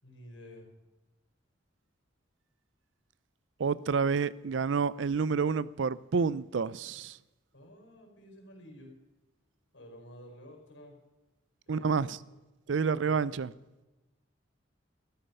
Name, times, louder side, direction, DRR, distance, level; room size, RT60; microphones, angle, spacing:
voice 1, 0.0-0.7 7.5-8.9 9.7-11.0 11.7-12.1 12.8-13.3, equal, 75° left, 4.8 m, -51 dB
voice 2, 3.6-7.2 11.7-12.2 12.7-13.5, right 5 dB, 75° right, 0.5 m, -29 dB
14.5 x 12.5 x 5.5 m
head